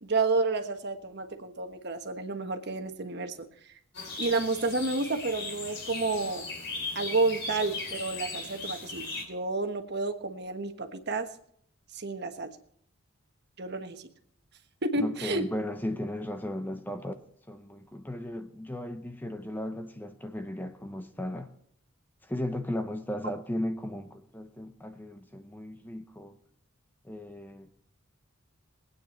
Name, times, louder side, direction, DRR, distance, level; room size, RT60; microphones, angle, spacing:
voice 1, 0.0-3.4 4.2-6.4 6.9-11.3 11.9-12.5 13.6-14.0 14.8-15.4, right 3 dB, 50° right, 1.4 m, -30 dB
sound 1, 3.9-9.2, left 3 dB, 55° left, 3.1 m, -38 dB
voice 2, 15.0-17.2 17.5-21.5 22.2-26.4 27.0-27.7, left 1 dB, 10° left, 0.8 m, -36 dB
20.5 x 9.3 x 4.4 m
head